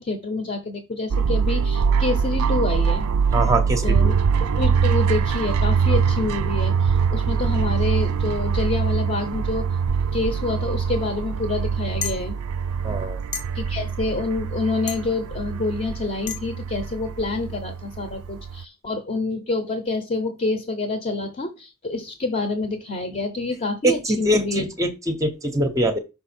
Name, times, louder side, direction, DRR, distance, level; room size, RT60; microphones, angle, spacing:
voice 1, 0.0-3.1 3.8-4.1 4.4-9.8 10.1-12.4 13.5-24.6, left 3 dB, 35° left, 8 dB, 0.8 m, -27 dB
sound 1, 1.1-18.6, right 6 dB, 75° right, 0.4 m, -23 dB
voice 2, 3.3-4.1 12.8-13.2 23.8-26.0, right 1 dB, 15° right, 6 dB, 0.6 m, -23 dB
sound 2, 12.0-12.2 13.3-13.4 14.9-15.0 16.3-16.4, left 7 dB, 75° left, 1.1 m, -29 dB
5.7 x 4.8 x 4.3 m, 0.27 s
head